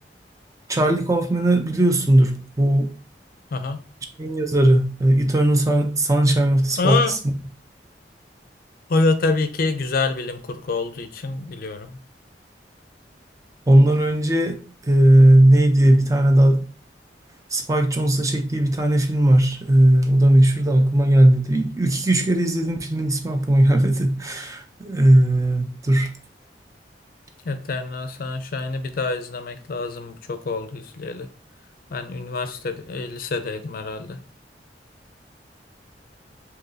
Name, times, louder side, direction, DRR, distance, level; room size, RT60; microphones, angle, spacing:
voice 1, 0.7-2.9 4.2-7.0 7.2-7.3 13.7-14.6 14.8-16.7 17.5-26.1, right 1 dB, 20° right, 5 dB, 0.4 m, -17 dB
voice 2, 3.5-3.8 6.8-7.2 8.9-12.0 27.4-31.3 31.9-34.2, left 3 dB, 55° left, 9 dB, 0.4 m, -26 dB
2.9 x 2.6 x 3.8 m, 0.40 s
head